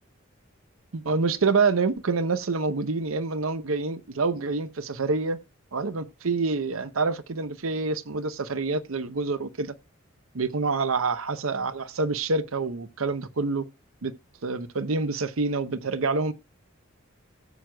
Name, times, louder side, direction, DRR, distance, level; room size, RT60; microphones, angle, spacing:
voice 1, 0.9-5.4 5.7-9.7 10.3-13.6 14.0-14.1 14.4-16.3, right 4 dB, 85° right, 0.8 m, -27 dB
17.0 x 7.7 x 2.2 m
head